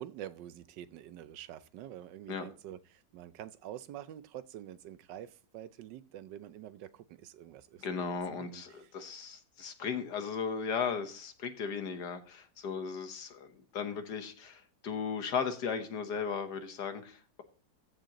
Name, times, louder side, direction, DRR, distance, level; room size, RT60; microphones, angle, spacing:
voice 1, 0.0-8.9, right 11 dB, 75° right, 1.2 m, -47 dB
voice 2, 7.8-17.4, left 6 dB, 65° left, 1.6 m, -36 dB
14.0 x 7.4 x 2.9 m
omnidirectional pair, 2.0 m